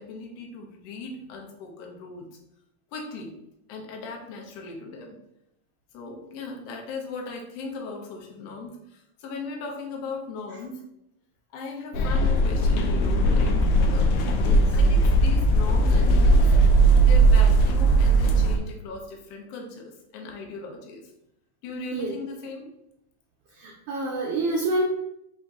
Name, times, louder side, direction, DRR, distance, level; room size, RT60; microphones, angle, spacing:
voice 1, 0.0-2.3 2.9-3.3 3.7-5.2 5.9-10.8 11.5-13.5 13.9-14.1 14.7-21.1 21.6-22.7, left 3 dB, 70° left, 1 dB, 1.6 m, -38 dB
sound 1, 11.9-18.6, right 2 dB, 85° left, 1.3 m, -19 dB
voice 2, 14.2-14.6 21.9-22.1 23.6-24.8, right 2 dB, 90° right, -1 dB, 1.3 m, -28 dB
4.7 x 2.8 x 3.5 m, 0.82 s
omnidirectional pair, 3.3 m